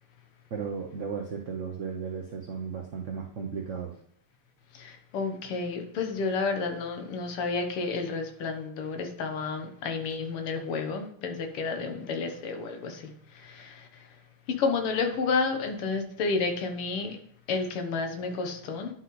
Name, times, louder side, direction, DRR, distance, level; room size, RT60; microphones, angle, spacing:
voice 1, 0.5-3.9, right 6 dB, 60° right, 1 dB, 0.7 m, -35 dB
voice 2, 4.8-13.9 14.6-17.2 17.5-18.9, left 4 dB, 80° left, 5 dB, 2.0 m, -31 dB
10.5 x 5.9 x 3.2 m, 0.67 s
omnidirectional pair, 2.4 m